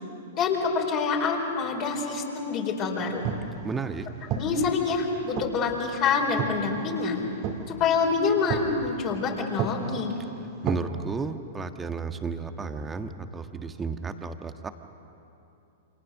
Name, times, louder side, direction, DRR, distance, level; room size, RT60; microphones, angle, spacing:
voice 1, 0.3-3.2 4.3-7.3 7.7-10.1, left 5 dB, 35° left, 0 dB, 4.7 m, -26 dB
sound 1, 3.0-10.8, right 7 dB, 40° right, 2.5 m, -35 dB
voice 2, 3.6-4.1 10.6-14.7, right 4 dB, 15° right, 7 dB, 1.5 m, -33 dB
29.0 x 26.5 x 6.6 m, 2.8 s
hypercardioid pair, 105°, 0 cm